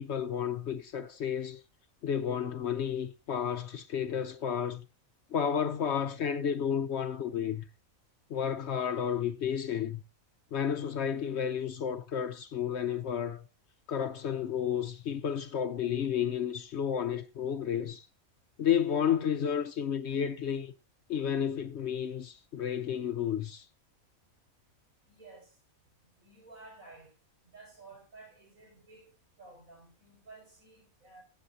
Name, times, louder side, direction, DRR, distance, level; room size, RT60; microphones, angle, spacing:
voice 1, 0.0-1.6 2.0-4.8 5.3-7.7 8.3-10.0 10.5-13.4 13.9-18.1 18.6-20.7 21.1-23.7, left 8 dB, 60° left, 0.9 m, -31 dB
voice 2, 25.0-25.6 26.0-27.1 27.4-29.1 29.4-31.2, right 3 dB, 75° right, 6.0 m, -53 dB
14.5 x 7.7 x 2.7 m
omnidirectional pair, 1.4 m